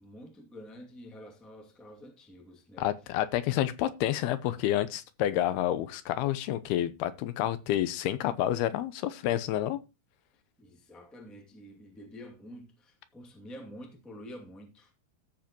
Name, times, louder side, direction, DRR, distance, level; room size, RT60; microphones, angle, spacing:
voice 1, 0.0-2.9 10.6-14.9, equal, ahead, 1.1 m, -48 dB
voice 2, 2.8-9.8, left 12 dB, 85° left, 2.8 m, -29 dB
14.0 x 7.5 x 3.0 m
omnidirectional pair, 4.5 m